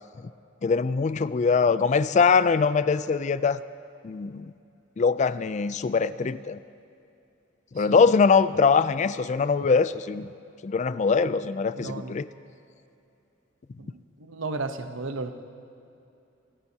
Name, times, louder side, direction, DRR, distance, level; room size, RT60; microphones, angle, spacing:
voice 1, 0.6-3.6 4.0-4.5 5.0-6.6 7.7-10.3 10.6-12.3, left 5 dB, 35° left, 15 dB, 0.3 m, -22 dB
voice 2, 7.8-8.1 11.8-12.1 13.8-15.3, right 3 dB, 80° right, 7 dB, 1.0 m, -34 dB
26.5 x 15.5 x 2.9 m, 2.7 s
head